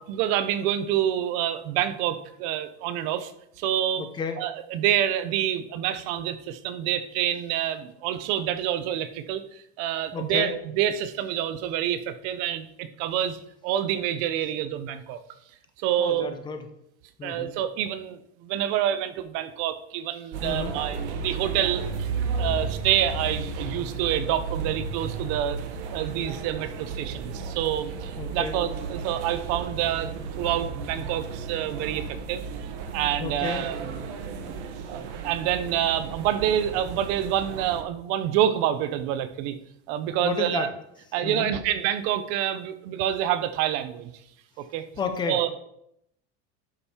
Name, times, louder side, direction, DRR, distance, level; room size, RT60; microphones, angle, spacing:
voice 1, 0.1-3.3 3.6-4.1 4.4-13.4 13.6-15.2 15.8-16.3 17.2-22.1 22.4-25.6 25.9-32.4 32.9-34.0 34.4-34.5 34.9-39.6 39.9-40.7 41.1-44.1 44.7-44.9 45.3-45.5, right 11 dB, 45° right, 12 dB, 0.7 m, -27 dB
voice 2, 4.0-4.4 10.1-10.5 16.0-16.7 17.2-17.5 20.4-20.8 28.2-28.6 33.2-33.7 40.2-40.7 41.2-41.5 44.9-45.5, left 5 dB, 15° left, 6 dB, 0.6 m, -32 dB
sound 1, 20.3-37.8, right 4 dB, 80° right, 1.3 m, -34 dB
11.5 x 5.3 x 4.3 m, 0.76 s
cardioid pair, 180°, 34 cm